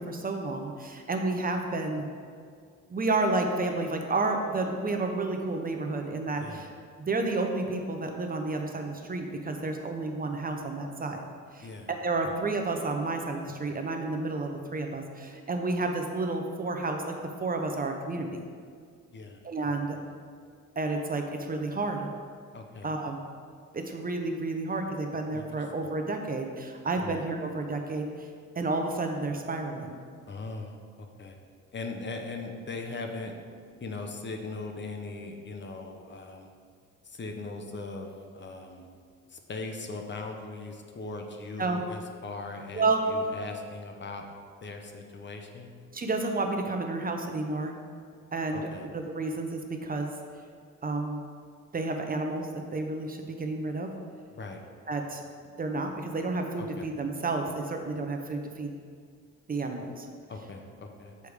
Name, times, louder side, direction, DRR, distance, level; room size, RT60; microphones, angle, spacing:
voice 1, 0.0-2.0 2.9-6.7 7.0-11.2 11.5-11.7 12.0-17.1 17.4-18.4 19.4-20.0 20.8-22.1 22.8-23.2 23.7-28.1 28.5-30.0 41.6-41.8 42.7-43.0 45.9-47.7 48.3-48.7 48.9-50.1 50.8-51.2 51.7-53.9 54.9-55.2 55.6-58.7 59.5-60.1, right 3 dB, 30° right, 4 dB, 0.7 m, -31 dB
voice 2, 6.4-6.7 11.6-11.9 12.2-12.4 19.1-19.4 22.5-22.9 25.3-25.7 27.0-27.2 30.3-31.4 31.7-33.3 33.8-36.5 37.0-38.9 39.3-44.3 44.6-45.7 48.5-48.9 54.3-54.6 56.6-56.9 60.3-61.1, left 3 dB, 40° left, 4 dB, 0.8 m, -39 dB
6.8 x 4.7 x 4.9 m, 2.1 s
cardioid pair, 90°, 30 cm